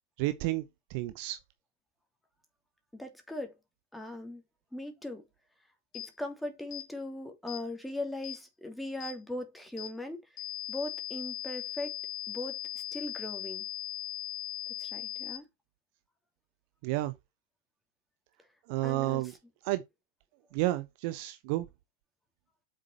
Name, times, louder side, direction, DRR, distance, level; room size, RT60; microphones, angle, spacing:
voice 1, 0.2-0.6 0.9-1.4 16.8-17.1 18.7-19.3 19.6-19.8 20.5-21.7, right 18 dB, 45° right, 0.7 m, -31 dB
voice 2, 2.9-3.5 3.9-4.4 4.7-5.2 5.9-10.2 10.7-11.9 12.3-12.6 12.9-13.7 14.8-15.5 18.8-19.2, left 1 dB, 5° left, 2.9 m, -39 dB
sound 1, 5.9-6.1 6.7-6.9 7.5-7.6 8.2-8.4 9.0-9.2 9.8-9.9 10.4-15.4, left 12 dB, 40° left, 2.8 m, -39 dB
7.7 x 6.5 x 4.3 m
figure-of-eight pair, 90°, 0 cm